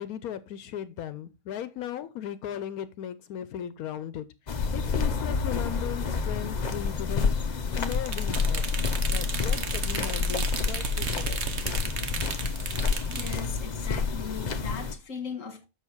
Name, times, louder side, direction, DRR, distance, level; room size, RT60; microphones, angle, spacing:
voice 1, 0.0-4.2 4.7-7.3 7.8-8.6 9.1-11.4, left 10 dB, 80° left, 1.1 m, -37 dB
sound 1, 4.5-14.9, left 5 dB, 35° left, 0.8 m, -29 dB
sound 2, 7.8-13.4, right 5 dB, 50° right, 1.2 m, -34 dB
voice 2, 13.1-15.7, left 6 dB, 60° left, 1.8 m, -38 dB
7.5 x 6.3 x 4.5 m
omnidirectional pair, 1.5 m